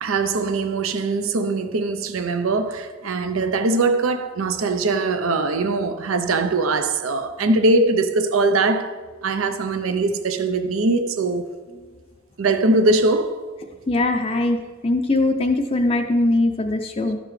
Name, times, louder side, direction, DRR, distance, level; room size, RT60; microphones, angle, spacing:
voice 1, 0.0-9.0 9.2-11.5 12.4-13.4, right 3 dB, 80° right, 0.6 m, -21 dB
voice 2, 13.9-17.2, left 2 dB, 30° left, 0.4 m, -21 dB
12.0 x 6.7 x 3.2 m
head